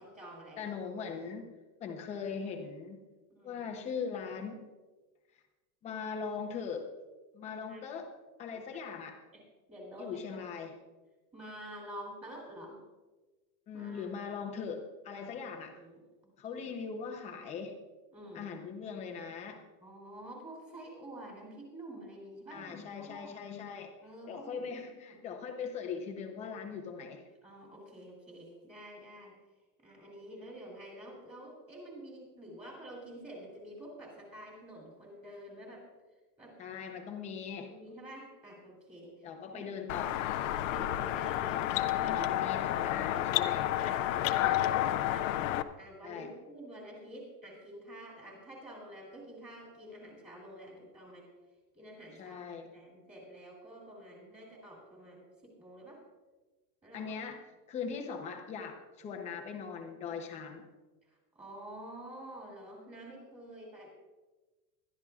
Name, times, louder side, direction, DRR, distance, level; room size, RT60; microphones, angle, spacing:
voice 1, 0.0-0.7 3.3-3.6 7.7-7.8 8.5-8.8 9.3-9.4 9.7-10.4 11.3-12.8 13.7-14.1 15.2-16.6 18.1-18.5 19.8-22.8 23.1-23.4 24.0-24.7 24.9-25.2 27.4-29.4 29.8-35.9 36.4-36.6 37.7-39.7 40.5-42.2 42.8-43.3 43.8-44.7 45.1-51.3 51.7-52.4 52.7-56.0 56.8-57.1 61.0-63.9, right 1 dB, 15° right, -2 dB, 2.7 m, -49 dB
voice 2, 0.6-1.5 1.8-3.0 3.4-4.6 5.8-6.9 7.3-8.1 8.4-9.2 10.0-10.8 13.7-15.8 16.4-17.8 18.3-19.6 22.5-23.9 24.3-27.2 36.6-37.7 39.2-40.3 42.0-43.7 46.0-46.3 52.2-52.7 56.9-57.4 57.7-60.7, left 6 dB, 15° left, 3 dB, 0.7 m, -40 dB
sound 1, 39.9-45.6, left 13 dB, 50° left, 0.6 m, -30 dB
21.0 x 12.0 x 2.4 m, 1.2 s
supercardioid pair, 175°, 50 cm